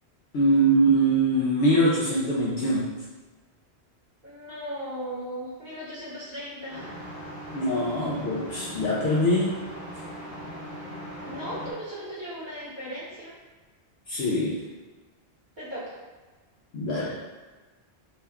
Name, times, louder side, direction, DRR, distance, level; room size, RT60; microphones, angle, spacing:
voice 1, 0.3-2.9 7.5-9.6 14.1-14.6 16.7-17.1, right 1 dB, 75° left, -7 dB, 0.8 m, -23 dB
voice 2, 4.2-6.9 11.2-13.4 15.6-16.0, equal, 45° right, -10 dB, 1.1 m, -37 dB
sound 1, 6.7-11.7, equal, 55° left, 1.1 m, -39 dB
2.9 x 2.2 x 3.4 m, 1.3 s
omnidirectional pair, 1.1 m